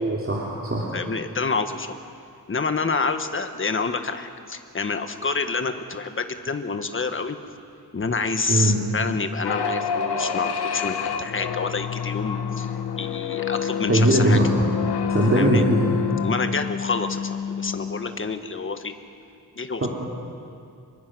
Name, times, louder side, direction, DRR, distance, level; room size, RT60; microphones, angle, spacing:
voice 1, 0.0-0.9 8.5-8.8 13.5-14.5 15.1-15.9 19.8-19.9, right 1 dB, 35° right, -4 dB, 3.2 m, -21 dB
voice 2, 0.9-1.9 2.5-7.4 7.9-14.4 15.3-15.7 16.2-18.9 19.5-19.9, left 4 dB, 30° left, 7 dB, 1.5 m, -28 dB
sound 1, 9.4-18.2, left 7 dB, 90° left, 1.1 m, -28 dB
27.0 x 23.0 x 6.3 m, 2.5 s
wide cardioid pair, 120°, 38 cm